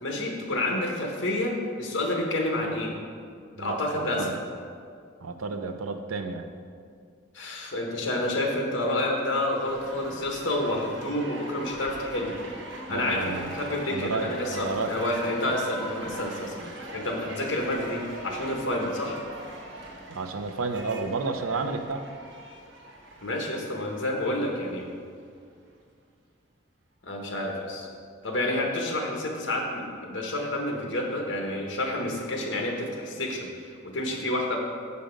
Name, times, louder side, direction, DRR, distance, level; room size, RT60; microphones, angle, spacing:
voice 1, 0.0-3.0 3.6-4.4 7.3-12.3 12.9-16.6 16.9-19.2 23.2-24.8 27.0-27.9 28.2-34.6, left 1 dB, 55° left, 1 dB, 1.0 m, -29 dB
voice 2, 3.6-4.4 5.2-6.5 12.9-13.5 13.9-15.0 20.1-22.0, right 4 dB, 80° right, 7 dB, 0.6 m, -31 dB
sound 1, 9.6-24.7 25.3-25.4, right 1 dB, 60° right, 0.9 m, -42 dB
6.9 x 5.1 x 5.1 m, 2.2 s
head